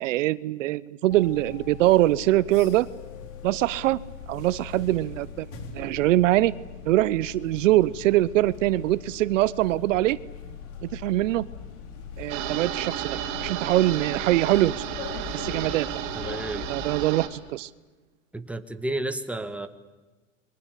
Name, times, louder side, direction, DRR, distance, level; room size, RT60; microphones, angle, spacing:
voice 1, 0.0-2.9 3.4-4.0 4.3-5.5 5.7-6.5 6.8-10.2 10.8-11.4 12.2-13.1 13.4-14.7 15.3-15.9 16.7-17.7, right 16 dB, 75° right, 18 dB, 0.9 m, -23 dB
sound 1, 1.1-17.1, left 7 dB, 60° left, 4.2 m, -41 dB
sound 2, 12.3-17.3, right 12 dB, 55° right, 3.5 m, -33 dB
voice 2, 16.2-16.7 18.3-19.7, right 2 dB, 5° right, 8 dB, 1.8 m, -31 dB
28.0 x 23.0 x 8.3 m, 1.2 s
supercardioid pair, 120°, 38 cm